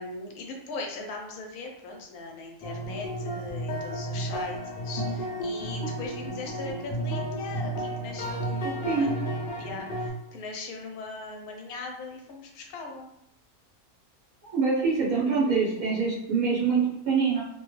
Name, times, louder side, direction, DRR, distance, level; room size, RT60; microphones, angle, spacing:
voice 1, 0.0-9.2 9.6-13.1, left 3 dB, 85° left, 1 dB, 1.1 m, -39 dB
sound 1, 2.6-10.1, right 1 dB, 55° left, 0.6 m, -32 dB
voice 2, 8.6-9.1 14.5-17.4, right 5 dB, 80° right, -7 dB, 1.3 m, -25 dB
3.0 x 2.2 x 3.1 m, 0.80 s
omnidirectional pair, 1.5 m